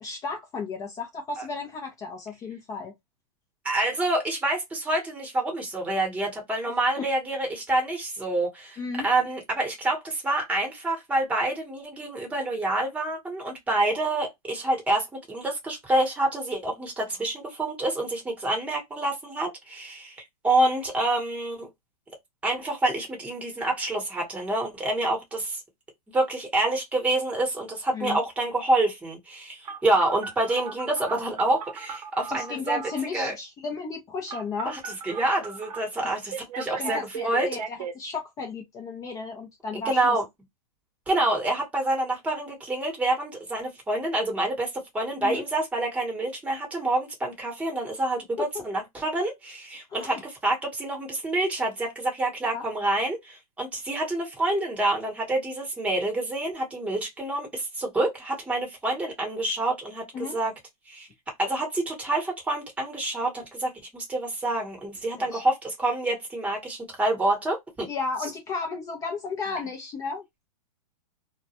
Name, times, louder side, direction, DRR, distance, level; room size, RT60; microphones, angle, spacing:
voice 1, 0.0-2.9 7.0-7.1 8.8-9.1 27.9-28.2 32.3-34.8 36.0-36.1 36.8-40.2 45.2-45.4 48.4-48.6 49.9-50.2 52.5-52.7 60.1-60.4 65.2-65.4 67.9-70.3, left 4 dB, 15° left, 0.4 m, -34 dB
voice 2, 3.6-20.2 20.4-21.7 22.4-25.6 26.1-32.8 33.1-33.3 34.6-37.5 39.7-40.2 41.1-60.5 60.9-61.1 61.4-67.9, right 2 dB, 5° right, 0.9 m, -27 dB
Telephone, 29.7-33.0 34.3-35.8 36.3-37.9, right 6 dB, 75° right, 0.7 m, -36 dB
2.2 x 2.1 x 2.8 m
hypercardioid pair, 145°, 20 cm